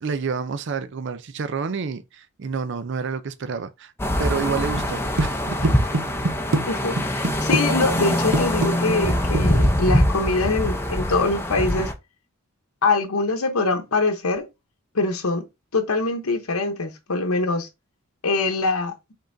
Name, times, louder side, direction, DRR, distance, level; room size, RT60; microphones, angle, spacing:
voice 1, 0.0-3.9 4.2-5.7, right 5 dB, 55° right, 0.4 m, -29 dB
sound 1, 4.0-11.9, equal, 10° left, 0.6 m, -23 dB
sound 2, 4.8-4.9 5.2-6.6 7.0-7.6 7.9-8.1 8.3-9.7, right 2 dB, 85° right, 0.8 m, -23 dB
voice 2, 6.6-11.9 12.8-14.5 14.9-15.4 15.7-17.7 18.2-18.9, left 3 dB, 85° left, 0.9 m, -23 dB
5.3 x 3.7 x 2.6 m
head